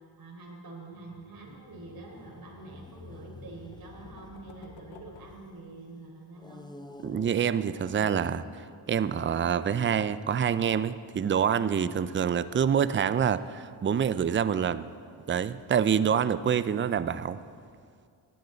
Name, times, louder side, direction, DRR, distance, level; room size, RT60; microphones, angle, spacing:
voice 1, 0.2-6.7, right 3 dB, 45° right, -1 dB, 4.1 m, -46 dB
sound 1, 0.9-5.6 6.4-9.8, left 2 dB, 10° left, 0.8 m, -50 dB
sound 2, 3.4-6.3, left 7 dB, 70° left, 1.0 m, -52 dB
voice 2, 7.0-14.9 15.3-17.4, right 8 dB, 25° right, 15 dB, 0.4 m, -26 dB
16.5 x 11.5 x 4.0 m, 2.2 s
cardioid pair, 65°, 48 cm